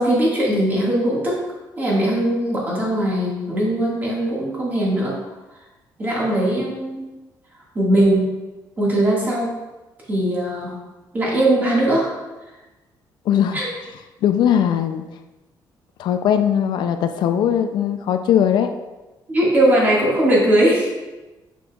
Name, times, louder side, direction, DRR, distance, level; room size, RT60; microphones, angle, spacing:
voice 1, 0.0-1.4 1.8-5.2 6.0-7.0 7.8-8.3 8.8-9.5 10.1-10.8 11.1-12.1 13.5-13.7 19.3-20.9, right 1 dB, 20° right, -5 dB, 1.7 m, -19 dB
voice 2, 13.3-13.6 14.2-15.0 16.0-18.7, left 9 dB, 65° left, 8 dB, 0.4 m, -19 dB
6.9 x 6.1 x 2.3 m, 1.1 s
cardioid pair, 170°, 8 cm